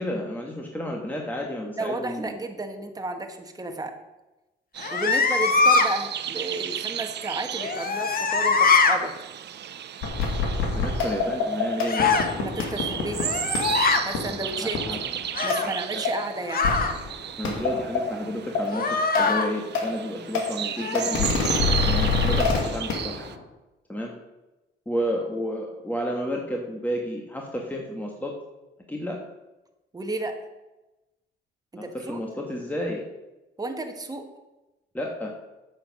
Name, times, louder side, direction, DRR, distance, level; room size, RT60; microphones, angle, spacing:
voice 1, 0.0-2.4 10.7-12.2 14.6-15.0 15.6-16.0 17.4-21.4 21.8-23.2 23.9-24.1 24.8-28.3 28.9-29.2 31.7-33.0 34.9-35.3, equal, 10° left, 0 dB, 1.5 m, -31 dB
voice 2, 1.8-3.9 4.9-9.1 12.4-13.2 14.0-14.8 15.4-16.7 29.9-30.4 31.7-32.2 33.6-34.2, right 2 dB, 20° right, 5 dB, 1.5 m, -32 dB
sound 1, 4.7-23.4, right 10 dB, 60° right, 0.7 m, -34 dB
sound 2, 4.8-5.9 7.6-9.0 11.9-12.3 13.1-14.0 15.3-15.7 16.5-17.0 18.7-19.5 20.8-21.2, left 4 dB, 45° left, 1.3 m, -22 dB
sound 3, 10.0-15.2 15.5-15.6 16.0-16.1 16.6-17.1 17.4-18.0 18.5-18.6 19.1-19.2 19.7-19.8 20.3-20.4 20.9-23.3, left 4 dB, 90° left, 2.2 m, -26 dB
8.8 x 7.3 x 6.3 m, 1.0 s
cardioid pair, 90°, 20 cm